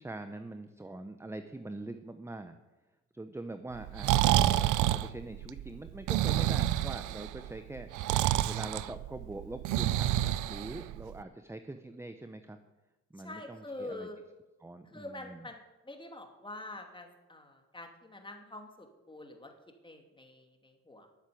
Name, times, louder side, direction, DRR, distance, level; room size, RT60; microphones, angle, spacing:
voice 1, 0.0-2.5 3.1-7.9 8.5-12.6 13.1-14.1 14.6-15.5, right 2 dB, 10° right, 8 dB, 0.8 m, -43 dB
Breathing, 3.8-11.2, right 13 dB, 85° right, 0.6 m, -29 dB
voice 2, 13.2-14.2 14.9-19.5 19.8-21.1, left 2 dB, 15° left, 4 dB, 2.6 m, -46 dB
13.0 x 8.1 x 9.3 m, 1.1 s
cardioid pair, 90°, 30 cm